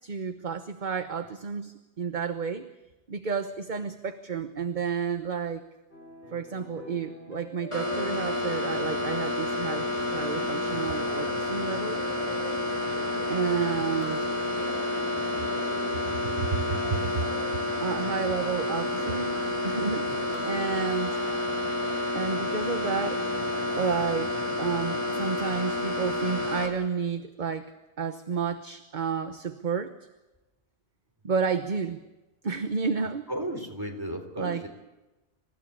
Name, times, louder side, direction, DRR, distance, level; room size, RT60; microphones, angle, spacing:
voice 1, 0.0-2.7 3.1-5.6 6.3-12.0 13.3-14.2 16.4-17.2 17.8-19.3 19.6-21.2 22.1-23.3 23.7-29.9 31.2-32.0 32.4-33.3 34.4-34.7, right 6 dB, 45° right, 8 dB, 1.2 m, -31 dB
sound 1, 5.9-21.3, equal, 45° left, 5.0 m, -46 dB
sound 2, 7.7-26.7, left 2 dB, 25° left, 3.7 m, -29 dB
voice 2, 33.3-34.7, right 1 dB, 20° right, 3 dB, 3.8 m, -35 dB
27.5 x 15.5 x 8.8 m, 1.1 s
omnidirectional pair, 1.1 m